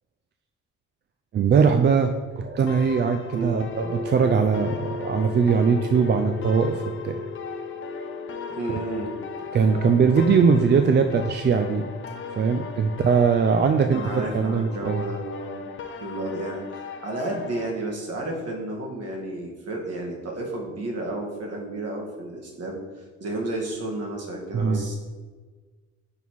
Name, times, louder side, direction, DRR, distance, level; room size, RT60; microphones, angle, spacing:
voice 1, 1.3-7.2 8.5-8.6 9.5-11.8 12.3-14.0 14.3-15.0 24.5-24.8, right 5 dB, 35° right, 6 dB, 0.4 m, -21 dB
sound 1, 2.7-17.7, left 6 dB, 40° left, 0.6 m, -39 dB
voice 2, 3.3-3.7 8.5-9.1 13.9-15.7 16.0-25.0, right 2 dB, 55° right, 0 dB, 1.6 m, -32 dB
sound 2, 3.3-17.2, left 3 dB, 85° right, 1.2 m, -38 dB
5.5 x 4.1 x 4.6 m, 1.4 s
cardioid pair, 90°, 30 cm